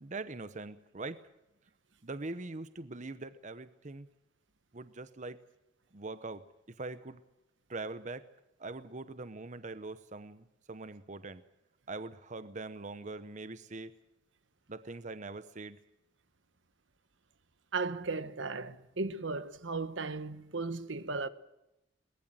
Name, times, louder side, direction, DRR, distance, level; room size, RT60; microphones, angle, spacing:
voice 1, 0.0-1.2 2.0-4.1 4.7-5.4 5.9-7.2 7.7-8.3 8.6-11.4 11.9-13.9 14.7-15.8, right 3 dB, 40° right, 0.9 m, -42 dB
voice 2, 17.7-21.3, right 3 dB, 75° right, 1.3 m, -36 dB
22.5 x 19.5 x 7.6 m
head